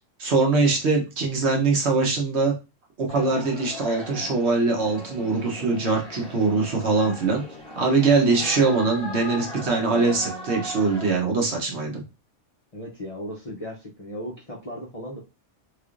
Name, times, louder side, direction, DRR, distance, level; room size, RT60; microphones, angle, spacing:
voice 1, 0.2-2.5 3.0-7.4 7.8-12.0, right 3 dB, 60° right, 0 dB, 1.2 m, -22 dB
sound 1, 3.1-11.2, equal, 5° left, 2.0 m, -38 dB
voice 2, 12.7-15.2, equal, 40° left, -3 dB, 0.6 m, -36 dB
3.4 x 3.3 x 2.4 m, 0.29 s
omnidirectional pair, 1.3 m